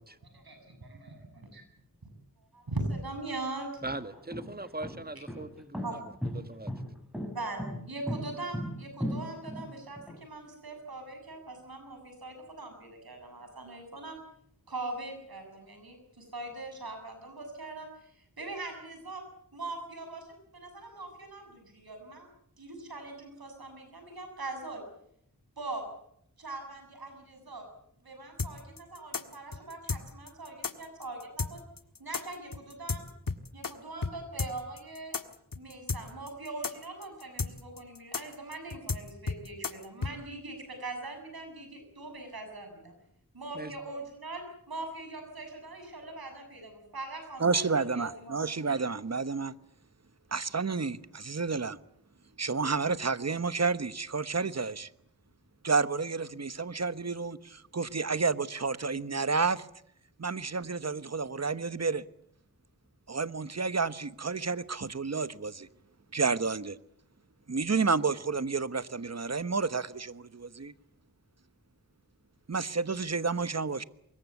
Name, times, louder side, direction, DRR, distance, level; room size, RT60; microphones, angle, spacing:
voice 1, 0.3-1.6 2.5-3.7 5.2-5.3 5.8-6.0 7.3-14.2 14.7-19.2 19.5-22.3 22.6-24.8 25.6-25.8 26.4-27.7 28.0-31.6 32.0-33.0 33.5-35.2 35.6-42.9 43.3-48.4, right 2 dB, 90° right, 7.4 m, -41 dB
sound 1, 2.9-3.0 3.6-10.2, equal, ahead, 6.8 m, -36 dB
voice 2, 3.8-6.0 6.3-6.7 43.5-43.7, right 2 dB, 25° right, 1.9 m, -40 dB
sound 2, 28.4-33.7 34.0-34.1 34.4-40.1, left 4 dB, 65° left, 1.8 m, -33 dB
voice 3, 47.4-49.5 50.3-51.8 52.4-54.9 55.6-59.7 60.2-62.0 63.1-65.7 66.1-66.8 67.5-70.7 72.5-73.8, right 4 dB, 45° right, 1.1 m, -30 dB
24.5 x 22.0 x 8.2 m
wide cardioid pair, 45°, 35 cm